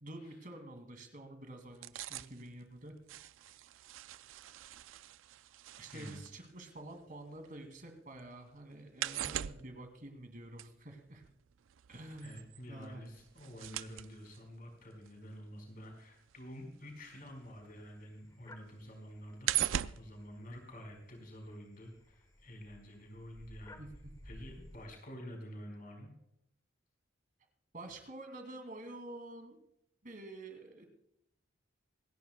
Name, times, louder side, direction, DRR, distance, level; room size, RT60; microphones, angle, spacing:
voice 1, 0.0-2.9 5.8-11.2 11.9-13.0 23.8-24.1 27.7-29.6 30.0-30.9, right 1 dB, 45° right, 5 dB, 2.2 m, -48 dB
sound 1, 1.7-7.8 8.1-17.8 18.1-21.2 21.5-21.6, right 12 dB, 75° right, 0.4 m, -41 dB
voice 2, 5.9-6.2 12.2-23.8 24.2-26.1, equal, 45° left, 2 dB, 4.5 m, -49 dB
sound 2, 17.1-24.9, left 1 dB, 20° left, 1.3 m, -58 dB
26.5 x 10.5 x 2.2 m, 0.76 s
head